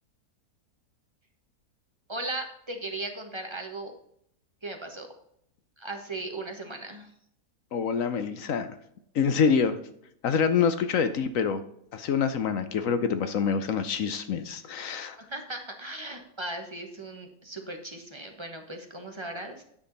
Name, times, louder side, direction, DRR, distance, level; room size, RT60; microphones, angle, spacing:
voice 1, 2.1-3.9 4.6-5.1 5.8-7.1 15.3-19.6, right 2 dB, 20° right, 4 dB, 1.2 m, -37 dB
voice 2, 7.7-8.8 9.1-9.8 10.2-11.6 11.9-15.2, left 6 dB, 65° left, 10 dB, 1.0 m, -26 dB
9.7 x 6.2 x 4.0 m, 0.71 s
omnidirectional pair, 1.7 m